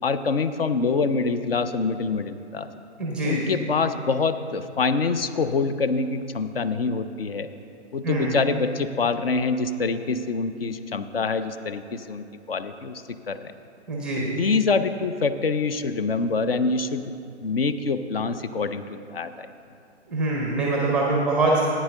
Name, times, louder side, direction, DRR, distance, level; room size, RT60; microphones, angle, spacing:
voice 1, 0.0-2.7 3.2-7.5 7.9-13.5 14.2-17.1 17.4-19.5, left 4 dB, 55° left, 11 dB, 0.6 m, -25 dB
voice 2, 3.0-3.6 8.0-8.4 13.9-14.4 20.1-21.6, right 2 dB, 5° right, -2 dB, 0.5 m, -24 dB
14.0 x 9.1 x 3.7 m, 2.5 s
figure-of-eight pair, 130°, 35 cm